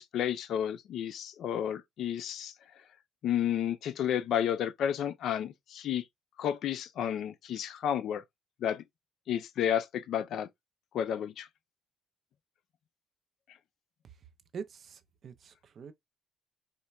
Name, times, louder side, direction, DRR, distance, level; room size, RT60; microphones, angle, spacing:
voice 1, 0.0-2.5 3.2-6.0 6.4-8.2 8.6-8.8 9.3-10.5 10.9-11.5, left 9 dB, 70° left, 0.3 m, -31 dB
voice 2, 14.5-15.9, right 6 dB, 50° right, 0.5 m, -44 dB
4.0 x 2.1 x 2.2 m
cardioid pair, 95°, 0 cm